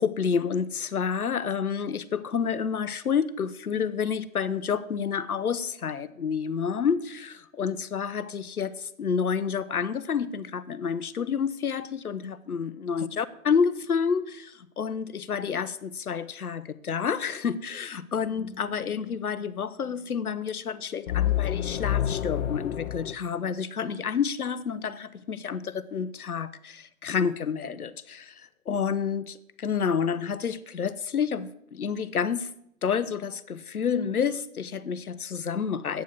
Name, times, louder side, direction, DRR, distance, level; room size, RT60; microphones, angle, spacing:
voice 1, 0.0-32.5 32.8-36.0, left 6 dB, 90° left, 15 dB, 1.0 m, -29 dB
sound 1, 18.2-19.0 21.1-23.1, left 11 dB, 60° left, 1.3 m, -28 dB
11.5 x 9.2 x 8.3 m, 0.73 s
hypercardioid pair, 125°, 43 cm